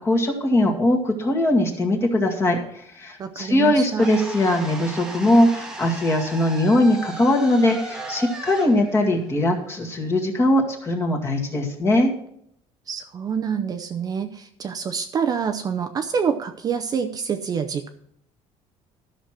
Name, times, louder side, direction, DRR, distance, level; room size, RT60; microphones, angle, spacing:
voice 1, 0.0-12.1, left 1 dB, 20° left, 1 dB, 2.0 m, -20 dB
voice 2, 3.2-4.1 12.9-17.9, right 7 dB, 30° right, 6 dB, 0.7 m, -27 dB
sound 1, 4.0-10.1, right 2 dB, 5° right, 1.3 m, -36 dB
13.0 x 6.4 x 5.8 m, 0.69 s
cardioid pair, 165°, 13 cm